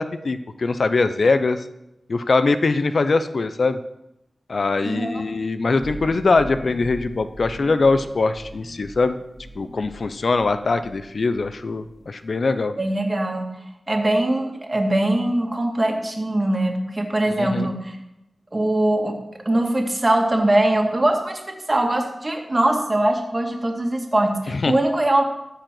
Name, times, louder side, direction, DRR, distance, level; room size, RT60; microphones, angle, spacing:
voice 1, 0.0-1.6 2.1-3.8 4.5-9.2 9.6-12.7 17.4-17.7 24.6-24.7, left 3 dB, 65° left, 11 dB, 0.6 m, -22 dB
voice 2, 4.8-5.2 12.8-13.5 13.9-18.0 18.5-19.1 19.5-21.4 21.7-25.2, right 1 dB, 30° right, 3 dB, 2.0 m, -21 dB
sound 1, 5.7-11.1 11.4-12.1, equal, 30° left, 3.2 m, -39 dB
13.5 x 4.9 x 7.6 m, 0.89 s
wide cardioid pair, 70°, 0 cm